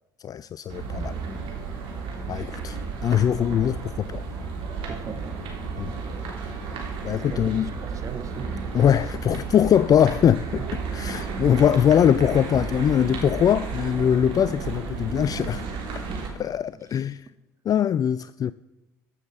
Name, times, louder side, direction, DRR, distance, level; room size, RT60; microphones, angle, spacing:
voice 1, 0.2-1.2 2.3-4.2 5.8-5.9 7.0-7.7 8.7-15.7 16.4-17.3 17.6-18.5, left 9 dB, 40° left, 0.4 m, -22 dB
sound 1, 0.7-16.3, right 5 dB, 65° right, 3.2 m, -33 dB
voice 2, 4.9-5.4 7.3-8.6 16.0-16.3, right 5 dB, 35° right, 1.6 m, -38 dB
14.5 x 7.4 x 7.6 m
hypercardioid pair, 65°, 10 cm